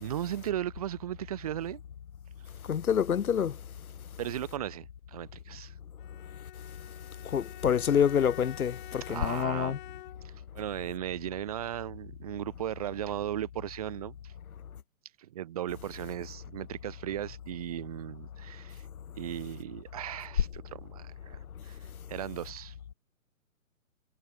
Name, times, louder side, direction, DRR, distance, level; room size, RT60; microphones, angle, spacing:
voice 1, 0.0-1.8 4.2-5.7 9.1-9.8 10.2-14.3 15.2-18.9 19.2-21.8 22.1-22.9, right 12 dB, 25° right, 0.6 m, -37 dB
voice 2, 2.7-3.6 7.2-9.8, left 8 dB, 80° left, 0.9 m, -27 dB
Bowed string instrument, 6.0-10.5, left 17 dB, 35° left, 5.8 m, -48 dB
hypercardioid pair, 140°, 42 cm